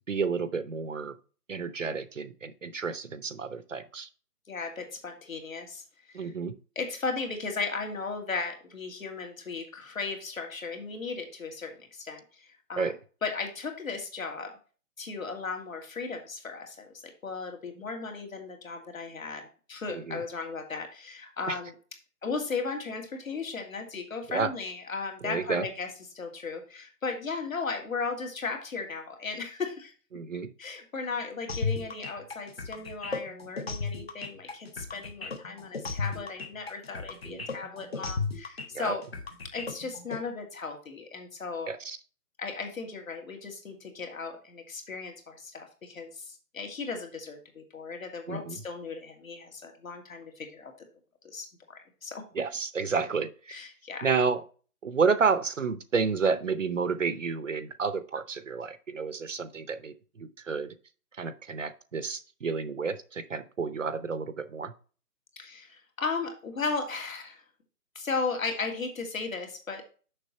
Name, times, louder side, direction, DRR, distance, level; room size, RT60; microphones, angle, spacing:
voice 1, 0.1-1.2 1.5-4.1 6.1-6.6 12.8-13.0 19.9-20.2 21.5-21.6 24.3-24.5 25.2-25.7 30.1-30.5 37.2-37.4 38.7-38.9 41.7-42.0 48.3-48.6 52.3-53.6 54.0-54.4 54.8-60.7 61.2-64.7, right 5 dB, 55° right, 13 dB, 0.7 m, -30 dB
voice 2, 4.5-6.3 6.8-12.9 13.2-14.5 15.0-21.7 22.2-25.9 26.1-29.9 30.6-39.0 39.5-41.7 42.4-50.7 51.2-52.2 53.5-54.1 65.4-67.4 68.0-69.8, left 4 dB, 60° left, 3 dB, 2.4 m, -36 dB
sound 1, 31.5-40.2, left 4 dB, 40° left, 1.0 m, -35 dB
6.7 x 6.1 x 4.3 m, 0.38 s
hypercardioid pair, 175°, 46 cm